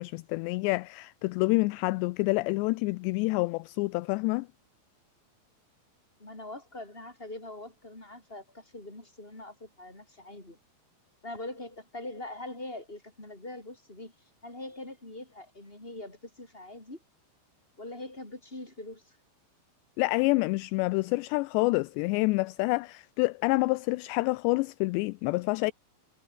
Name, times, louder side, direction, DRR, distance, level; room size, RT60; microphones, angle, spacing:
voice 1, 0.0-4.5 20.0-25.7, left 24 dB, 85° left, 2.6 m, -27 dB
voice 2, 6.2-10.6 11.2-14.1 14.4-17.0 17.8-19.2, left 2 dB, 10° left, 7.3 m, -43 dB
omnidirectional pair, 5.3 m